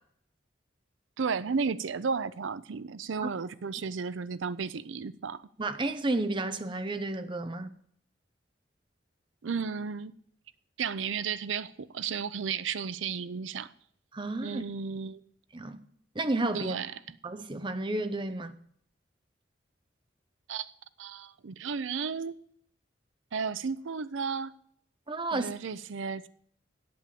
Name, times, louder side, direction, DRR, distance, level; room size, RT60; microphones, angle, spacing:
voice 1, 1.2-5.4 9.4-10.1 10.8-13.7 14.4-15.2 16.5-17.2 20.5-20.7 21.0-22.4 23.3-24.5 25.3-26.3, right 5 dB, 90° right, 0.5 m, -33 dB
voice 2, 5.6-7.7 14.1-14.6 15.5-15.8 16.1-16.8 17.2-18.5 25.1-25.5, right 2 dB, 25° right, 0.7 m, -31 dB
8.6 x 7.5 x 8.6 m
head